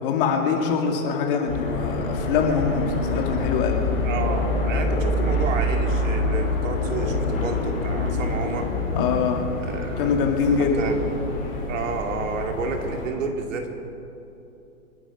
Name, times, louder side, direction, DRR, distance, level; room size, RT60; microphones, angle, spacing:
voice 1, 0.0-3.9 9.0-9.5 10.0-10.9, left 6 dB, 40° left, 2 dB, 2.3 m, -23 dB
sound 1, 1.5-13.1, left 2 dB, 15° left, 3.2 m, -26 dB
voice 2, 4.0-8.7 9.6-10.2 10.5-11.0 11.7-13.7, right 4 dB, 60° right, 3 dB, 2.6 m, -30 dB
28.0 x 10.0 x 5.0 m, 2.9 s
hypercardioid pair, 145°, 44 cm